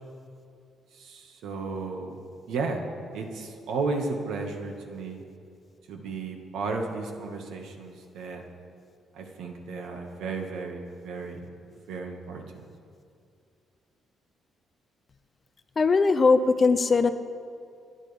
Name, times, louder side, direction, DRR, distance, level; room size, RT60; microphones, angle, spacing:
voice 1, 0.9-2.2 2.5-2.8 3.1-5.2 5.9-8.4 9.1-11.5 11.7-12.6, right 4 dB, 75° right, 2 dB, 1.9 m, -34 dB
voice 2, 15.8-17.1, left 4 dB, 25° left, 10 dB, 0.6 m, -20 dB
28.5 x 11.0 x 3.6 m, 2.4 s
cardioid pair, 175°, 0 cm